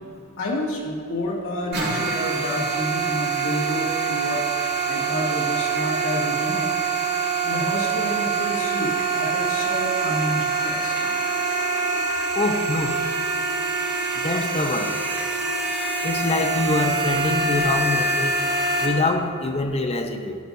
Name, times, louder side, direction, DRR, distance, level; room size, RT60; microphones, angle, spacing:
voice 1, 0.4-6.7 7.4-10.9, left 1 dB, 60° left, -5 dB, 2.3 m, -29 dB
sound 1, 1.7-18.9, right 4 dB, 50° right, 2.3 m, -25 dB
voice 2, 12.3-12.9 14.2-15.0 16.0-18.4 18.8-20.4, left 2 dB, 30° left, 4 dB, 0.7 m, -24 dB
13.0 x 11.0 x 2.7 m, 2.7 s
head